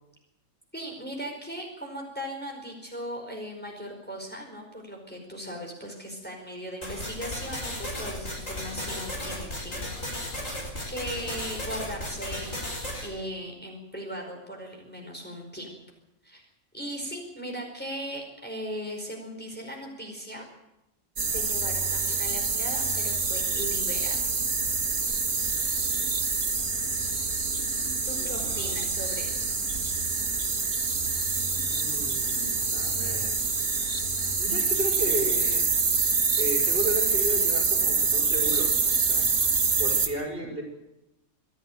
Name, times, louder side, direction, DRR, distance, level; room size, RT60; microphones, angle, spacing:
voice 1, 0.7-9.9 10.9-15.8 16.2-16.4 16.7-20.4 21.2-24.3 28.0-29.6, equal, 5° left, 0 dB, 4.9 m, -38 dB
sound 1, 6.8-13.1, left 1 dB, 75° left, 4.9 m, -35 dB
sound 2, 21.2-40.1, right 4 dB, 80° right, 2.1 m, -26 dB
voice 2, 27.8-28.8 31.7-33.4 34.4-35.7 36.4-39.3 39.8-40.6, right 1 dB, 45° right, 1 dB, 5.9 m, -34 dB
26.5 x 11.0 x 9.3 m, 0.91 s
omnidirectional pair, 1.3 m